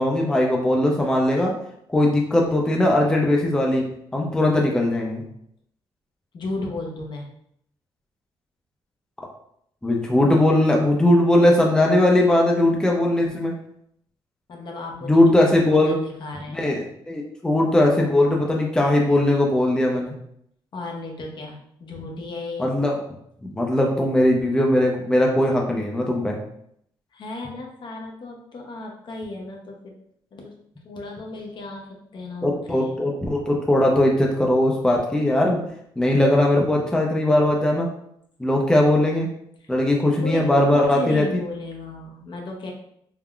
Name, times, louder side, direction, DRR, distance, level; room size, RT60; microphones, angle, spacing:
voice 1, 0.0-1.5 1.9-3.8 4.1-5.2 9.8-13.5 15.0-16.0 16.5-16.8 17.1-20.1 22.6-23.0 23.4-26.4 32.4-35.6 36.0-37.9 38.4-39.3 39.7-41.2, left 1 dB, 5° left, -1 dB, 0.5 m, -19 dB
voice 2, 6.3-7.3 14.5-15.2 15.6-16.8 20.7-22.7 27.1-30.0 30.3-30.6 30.8-32.9 39.6-39.7 40.2-42.7, left 2 dB, 50° left, 0 dB, 0.6 m, -35 dB
3.5 x 2.2 x 2.3 m, 0.71 s
cardioid pair, 90°, 10 cm